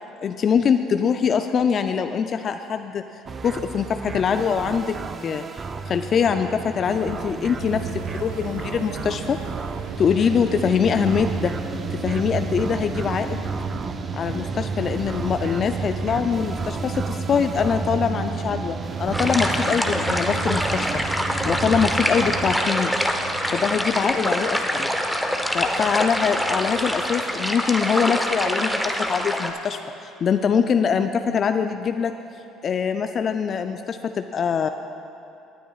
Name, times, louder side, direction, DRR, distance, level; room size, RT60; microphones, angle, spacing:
voice 1, 0.2-3.0 3.4-9.4 10.0-11.5 12.0-13.5 14.1-20.9 21.4-22.9 23.5-24.9 25.5-32.1 32.6-34.7, left 6 dB, 50° left, 8 dB, 0.4 m, -23 dB
sound 1, 3.3-22.6, right 4 dB, 35° right, 0.4 m, -31 dB
sound 2, 7.6-27.5, right 4 dB, 80° right, 0.8 m, -37 dB
sound 3, 19.1-29.5, equal, ahead, 0.9 m, -25 dB
19.0 x 9.1 x 2.4 m, 2.7 s
hypercardioid pair, 65°, 0 cm